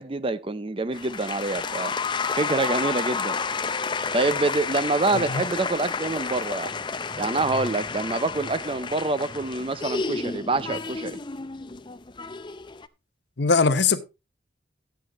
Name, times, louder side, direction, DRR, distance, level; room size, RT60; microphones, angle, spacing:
voice 1, 0.0-2.0 2.3-3.4 4.1-6.8 7.2-11.2, right 3 dB, 25° right, 0.5 m, -26 dB
sound 1, 0.9-12.9, left 5 dB, 25° left, 0.5 m, -31 dB
voice 2, 13.4-14.0, left 4 dB, 60° left, 0.8 m, -21 dB
13.0 x 9.2 x 3.0 m
head